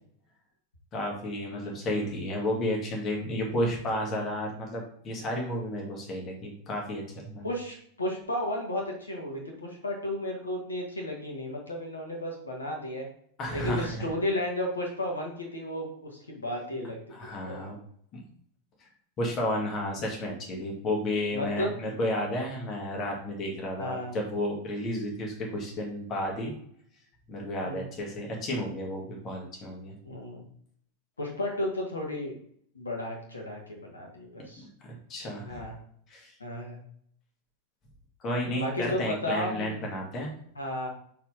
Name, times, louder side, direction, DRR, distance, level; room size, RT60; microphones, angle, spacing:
voice 1, 0.9-7.5 13.4-14.1 17.1-17.8 18.1-18.2 19.2-26.5 27.3-30.0 34.6-35.6 36.1-36.3 38.2-40.3, left 1 dB, 30° left, -1 dB, 2.0 m, -32 dB
voice 2, 7.4-13.0 13.5-17.0 17.4-17.7 21.3-21.7 23.8-24.2 27.6-27.8 30.0-30.4 31.2-32.4 32.7-34.6 35.4-35.7 36.4-36.8 38.5-39.8 40.5-40.9, left 1 dB, 75° left, 1 dB, 1.5 m, -33 dB
5.5 x 4.6 x 3.8 m, 0.65 s
figure-of-eight pair, 90°, 0 cm